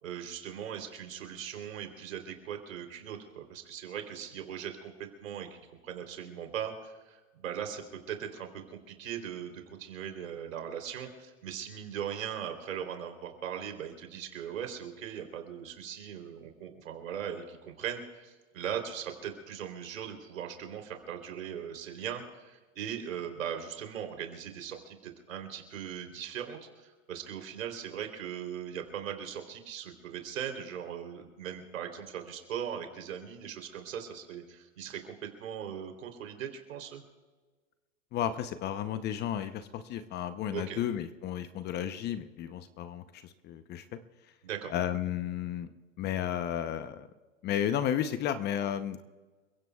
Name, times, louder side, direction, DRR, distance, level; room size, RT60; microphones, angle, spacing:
voice 1, 0.0-37.0 40.5-40.8 44.4-44.7, right 8 dB, 75° right, 5 dB, 3.4 m, -39 dB
voice 2, 38.1-44.0 44.7-45.7 46.0-47.1 47.4-49.0, left 10 dB, 25° left, 11 dB, 0.7 m, -33 dB
29.0 x 16.5 x 2.3 m, 1.3 s
hypercardioid pair, 120°, 40 cm